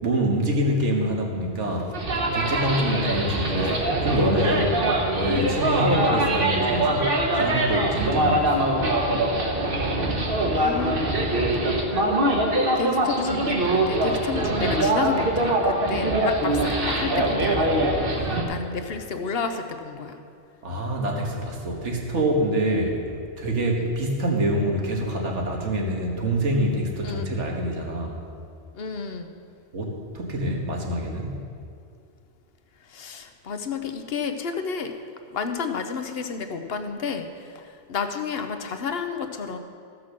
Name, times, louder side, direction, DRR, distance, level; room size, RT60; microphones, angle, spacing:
voice 1, 0.0-1.9 2.3-4.8 5.1-8.8 20.6-23.0 23.4-28.2 29.7-31.4, right 1 dB, 85° right, 1 dB, 1.7 m, -26 dB
sound 1, 1.9-18.4, right 1 dB, 55° right, 1.4 m, -23 dB
voice 2, 10.5-11.0 11.9-12.4 12.7-20.2 23.8-23.9 27.0-27.3 28.7-29.3 32.9-34.9 35.3-37.3 37.5-39.6, left 5 dB, 60° left, 7 dB, 1.0 m, -31 dB
14.5 x 6.0 x 6.4 m, 2.4 s
omnidirectional pair, 1.2 m